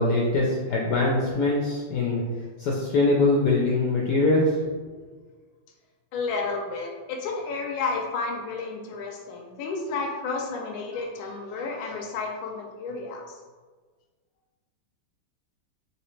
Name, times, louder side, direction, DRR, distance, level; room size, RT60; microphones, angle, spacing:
voice 1, 0.0-2.2 2.6-4.4, left 2 dB, 70° left, -2 dB, 1.0 m, -23 dB
voice 2, 6.1-13.3, left 4 dB, 85° left, 1 dB, 1.4 m, -31 dB
4.1 x 3.2 x 3.1 m, 1.4 s
omnidirectional pair, 2.1 m